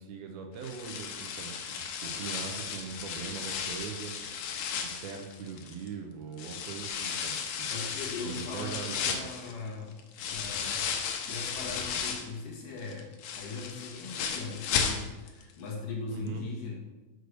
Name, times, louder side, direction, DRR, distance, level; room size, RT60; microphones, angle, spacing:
voice 1, 0.0-4.1 4.8-7.7 8.3-9.3 16.1-16.4, right 6 dB, 75° right, 3 dB, 2.6 m, -41 dB
sound 1, 0.6-5.9 6.4-12.4 12.8-15.4 15.7-15.8 16.3-16.4, left 7 dB, 80° left, 2.8 m, -35 dB
voice 2, 7.7-10.0 10.3-10.9 11.3-13.1 13.4-16.7, left 4 dB, 60° left, -2 dB, 3.0 m, -39 dB
6.6 x 6.5 x 6.6 m, 1.1 s
omnidirectional pair, 4.6 m